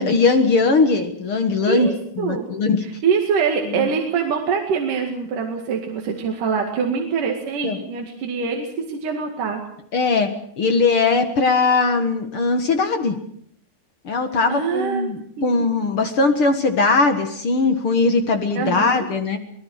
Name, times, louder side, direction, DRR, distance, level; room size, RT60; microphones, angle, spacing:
voice 1, 0.0-1.9 2.2-2.8 3.7-3.9 6.9-7.0 7.6-7.8 9.9-13.2 14.0-19.4, left 3 dB, 50° left, 7 dB, 1.8 m, -20 dB
voice 2, 1.7-2.5 2.8-9.6 14.5-15.7 18.6-19.1, right 6 dB, 60° right, 2 dB, 3.5 m, -24 dB
25.0 x 19.0 x 6.4 m, 0.67 s
omnidirectional pair, 4.3 m